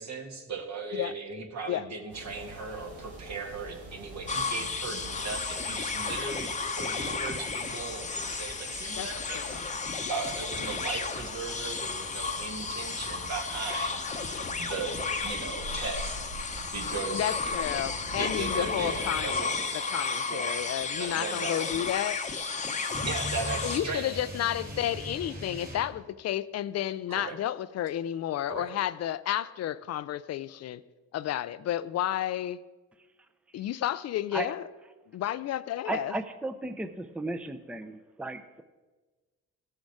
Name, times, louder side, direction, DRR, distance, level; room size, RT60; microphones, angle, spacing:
voice 1, 0.0-16.2 16.7-17.3 18.1-19.9 20.3-20.6 21.0-21.7 23.0-24.1 27.1-27.4 28.5-28.7, right 4 dB, 60° right, 2 dB, 2.0 m, -37 dB
sound 1, 2.1-19.3, right 2 dB, 85° right, 4.2 m, -45 dB
sound 2, 4.3-23.8, left 4 dB, 25° left, 0.8 m, -33 dB
voice 2, 17.1-22.2 23.6-30.8 31.1-32.6 33.5-34.7 35.1-36.1, left 12 dB, 60° left, 15 dB, 0.4 m, -31 dB
sound 3, 22.9-26.0, equal, 30° right, 2.4 m, -39 dB
voice 3, 35.9-38.6, right 2 dB, 5° right, 9 dB, 0.6 m, -35 dB
16.5 x 6.4 x 4.8 m, 1.3 s
cardioid pair, 90°, 30 cm